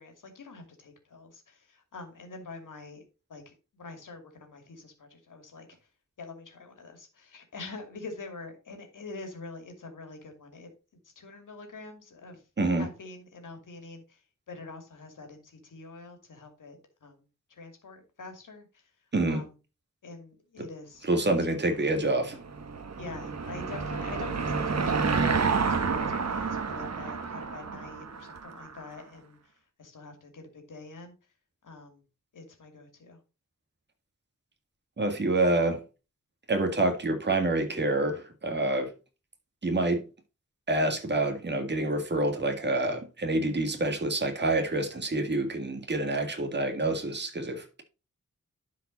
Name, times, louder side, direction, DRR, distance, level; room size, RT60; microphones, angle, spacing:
voice 1, 0.0-3.0 3.3-5.7 6.2-10.7 11.0-12.4 12.8-14.2 14.5-18.9 19.3-19.6 20.0-21.6 23.0-29.4 29.8-31.1 31.6-32.0 32.3-33.2, left 3 dB, 80° left, 2.6 m, -45 dB
voice 2, 21.0-22.4 35.0-35.8 36.5-38.9 39.6-40.0 40.7-47.8, right 2 dB, 35° right, 1.9 m, -27 dB
Car passing by / Engine, 22.0-28.8, right 5 dB, 55° right, 1.3 m, -30 dB
11.5 x 4.9 x 4.0 m
wide cardioid pair, 150°, 31 cm